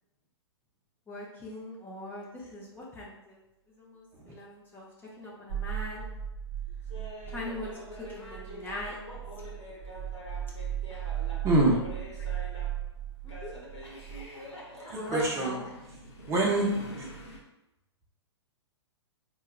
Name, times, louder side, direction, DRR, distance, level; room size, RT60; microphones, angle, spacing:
voice 1, 1.1-3.4 3.7-4.9 5.2-6.1 7.3-9.0 13.2-13.5 14.9-15.7, left 1 dB, 15° left, -5 dB, 0.6 m, -41 dB
sound 1, 5.5-14.3, right 11 dB, 55° right, 0.9 m, -37 dB
Laughter, 6.9-12.8 13.3-15.9, left 1 dB, 90° left, 1.0 m, -46 dB
voice 2, 11.4-11.8 14.9-15.5 16.3-16.7 17.0-17.1, right 2 dB, 20° right, -3 dB, 0.7 m, -25 dB
sound 2, 12.4-17.4, left 1 dB, 65° left, 1.0 m, -49 dB
4.5 x 2.2 x 2.3 m, 0.93 s
figure-of-eight pair, 110°, 15 cm